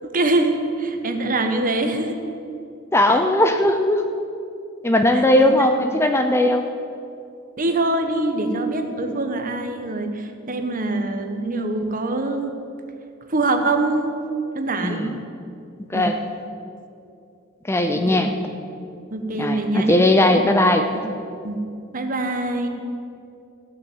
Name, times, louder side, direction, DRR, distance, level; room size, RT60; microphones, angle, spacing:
voice 1, 0.0-2.2 5.4-5.5 7.6-12.5 13.3-14.2 14.5-15.1 15.9-16.2 17.9-18.2 19.1-20.0 20.9-21.0 21.4-21.6 21.9-22.7, right 2 dB, 40° right, 6 dB, 1.1 m, -24 dB
voice 2, 2.9-4.0 4.8-6.6 14.8-15.1 15.9-16.2 17.7-18.3 19.3-20.8, left 1 dB, 10° left, 5 dB, 0.5 m, -18 dB
14.5 x 6.9 x 7.9 m, 2.5 s
head